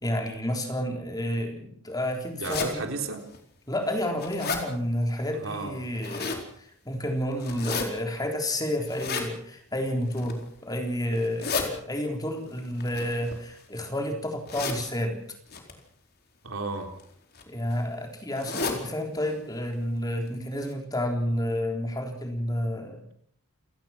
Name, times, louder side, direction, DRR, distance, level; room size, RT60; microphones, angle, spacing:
voice 1, 0.0-2.9 3.7-15.2 17.5-23.0, left 1 dB, 15° left, 3 dB, 3.8 m, -30 dB
voice 2, 2.3-3.2 5.4-5.7 16.4-16.9, right 3 dB, 65° right, 4 dB, 3.8 m, -33 dB
sound 1, 2.4-2.7 3.3-3.4 3.9-4.6 5.8-6.4 7.4-7.8 8.8-9.3 10.0-10.4 11.1-11.7 12.8-13.8 14.5-14.8 15.5-15.7 16.7-17.0 17.3-17.4 17.7-17.8 18.3-18.8 19.2-19.3 19.6-19.7 20.3-20.4 20.7-20.8, left 5 dB, 45° left, 4.3 m, -32 dB
29.0 x 18.5 x 6.0 m, 0.66 s
head